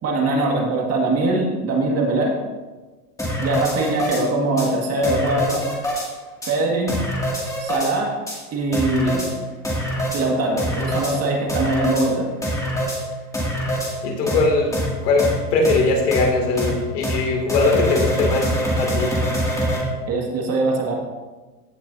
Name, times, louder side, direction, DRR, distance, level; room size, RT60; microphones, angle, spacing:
voice 1, 0.0-2.4 3.4-5.7 6.5-6.9 7.6-8.2 8.5-9.3 10.1-12.3 20.1-20.9, right 2 dB, 30° right, 1 dB, 1.9 m, -22 dB
sound 1, 3.2-4.2 4.6-4.7 5.0-6.1 6.4-6.5 6.9-7.9 8.3-8.4 8.7-9.3 9.6-10.2 10.6-11.1 11.5-12.1 12.4-13.0 13.3-13.9 14.3-14.4 14.7-14.9 15.2-15.3 15.6-15.8 16.1-16.2 16.6-16.7 17.0-17.2 17.5-19.8, equal, 5° left, 2.3 m, -24 dB
voice 2, 14.0-14.7 15.0-19.1, left 3 dB, 75° left, 1 dB, 2.6 m, -20 dB
15.5 x 6.5 x 2.7 m, 1.3 s
hypercardioid pair, 120°, 48 cm